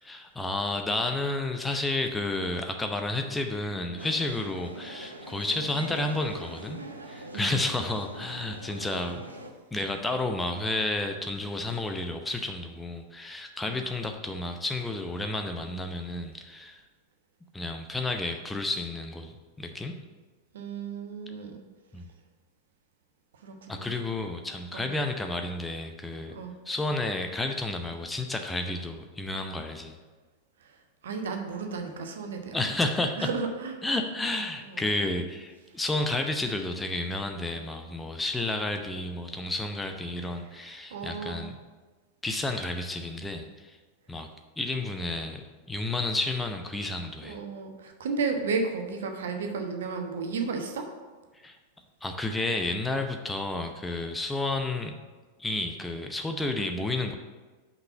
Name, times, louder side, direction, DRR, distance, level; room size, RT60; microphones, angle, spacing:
voice 1, 0.0-6.8 7.1-9.3 9.7-16.8 17.5-19.9 21.9-22.1 23.7-26.3 26.7-30.0 32.5-33.3 33.8-41.6 42.2-43.8 44.1-44.3 44.6-47.4 51.4-51.6 52.0-55.0 55.4-57.2, left 2 dB, 10° left, 5 dB, 0.7 m, -31 dB
sound 1, 4.0-9.5, right 1 dB, 80° right, 0.7 m, -43 dB
voice 2, 7.3-7.6 13.6-13.8 20.5-21.6 23.4-23.9 24.7-24.8 26.3-26.5 30.6-30.8 31.0-32.7 33.2-34.0 34.6-34.8 40.9-41.4 47.2-50.8, right 4 dB, 60° right, 4 dB, 1.0 m, -33 dB
5.7 x 5.4 x 6.8 m, 1.3 s
figure-of-eight pair, 90°, 0 cm